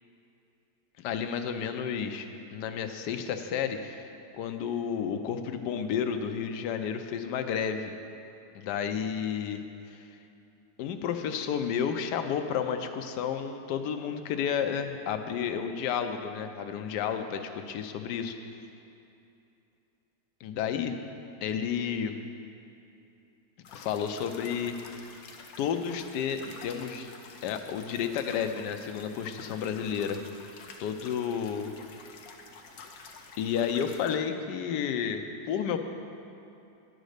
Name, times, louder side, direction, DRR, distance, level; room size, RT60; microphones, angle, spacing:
voice 1, 1.0-2.3 2.5-7.9 8.5-9.6 10.8-18.4 20.4-20.9 21.4-22.2 23.7-25.1 25.6-27.1 27.4-30.2 30.8-31.7 32.8-32.9 33.4-35.8, left 7 dB, 90° left, 7 dB, 1.2 m, -31 dB
sound 1, 23.6-34.2, left 4 dB, 65° left, 1.2 m, -49 dB
10.0 x 5.2 x 6.5 m, 2.7 s
omnidirectional pair, 1.8 m